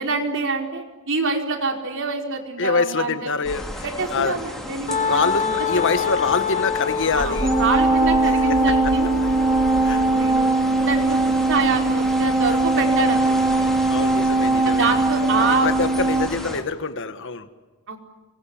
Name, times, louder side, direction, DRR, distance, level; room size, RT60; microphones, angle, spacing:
voice 1, 0.0-3.3 3.8-5.5 7.2-13.5 14.6-15.7 17.9-18.0, right 4 dB, 60° right, 3 dB, 4.7 m, -26 dB
voice 2, 2.6-3.8 4.1-4.4 5.0-7.5 8.4-8.6 9.8-10.0 12.5-12.6 13.6-14.9 15.4-17.5, left 4 dB, 60° left, 10 dB, 1.7 m, -25 dB
sound 1, 3.4-16.6, equal, ahead, 4.3 m, -32 dB
Wind instrument woodwind instrument, 4.9-10.5, left 6 dB, 35° left, 1.9 m, -27 dB
sound 2, 7.4-16.3, right 2 dB, 15° right, 2.4 m, -20 dB
29.5 x 23.0 x 8.6 m, 1.2 s
head